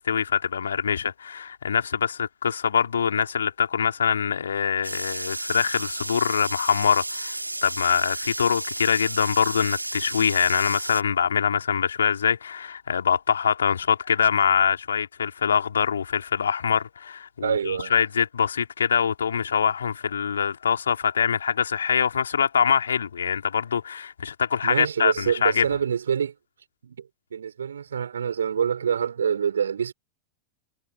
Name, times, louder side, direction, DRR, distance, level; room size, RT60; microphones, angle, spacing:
voice 1, 0.0-25.6, left 7 dB, 70° left, 3.4 m, -24 dB
water faucet bathroom flow, 4.8-11.0, right 2 dB, 85° right, 3.2 m, -32 dB
voice 2, 17.4-17.9 24.6-26.3 26.8-27.0 27.3-29.9, right 7 dB, 70° right, 4.5 m, -26 dB
figure-of-eight pair, 90°, 0 cm